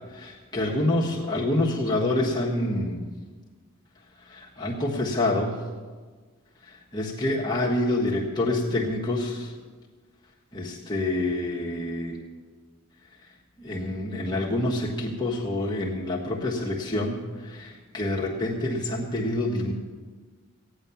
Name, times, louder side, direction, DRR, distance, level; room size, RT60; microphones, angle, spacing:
voice 1, 0.0-3.1 4.3-5.6 6.6-9.5 10.5-12.2 13.6-19.7, left 1 dB, 20° left, -3 dB, 1.4 m, -27 dB
15.5 x 9.7 x 7.0 m, 1.5 s
head